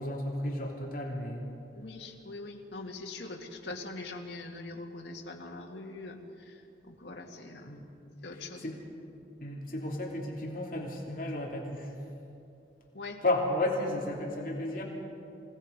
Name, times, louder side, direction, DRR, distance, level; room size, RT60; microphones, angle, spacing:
voice 1, 0.0-1.4 7.7-7.9 8.6-8.8 9.4-11.9 13.2-14.8, left 1 dB, 50° left, -1 dB, 2.9 m, -33 dB
voice 2, 1.8-7.7 8.2-8.7 12.9-13.2, left 2 dB, 80° left, 1 dB, 2.1 m, -43 dB
28.5 x 17.5 x 5.3 m, 2.7 s
head